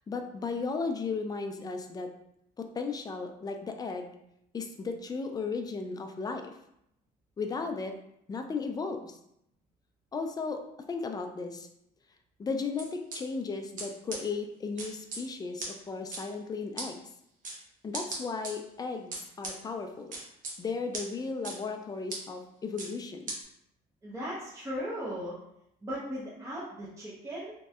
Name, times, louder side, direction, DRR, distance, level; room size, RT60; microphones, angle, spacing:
voice 1, 0.1-2.1 2.6-4.1 4.5-6.5 7.4-8.0 8.3-9.2 10.1-10.6 10.9-11.7 12.4-17.1 17.8-20.2 20.6-23.3, left 4 dB, 25° left, 5 dB, 0.3 m, -35 dB
sound 1, 12.8-13.2 13.8-13.9 14.1-14.2 14.8-15.2 15.6-15.7 16.1-16.2 16.8-16.9 17.4-17.6 17.9-18.5 19.1-19.5 20.1-20.5 20.9-21.0 21.4-21.6 22.1-22.2 22.8-22.9 23.3-23.4, right 3 dB, 50° right, 0.9 m, -37 dB
voice 2, 24.0-25.4 25.8-27.5, equal, 15° right, -8 dB, 0.8 m, -37 dB
3.0 x 2.7 x 2.3 m, 0.77 s
cardioid pair, 110°, 17 cm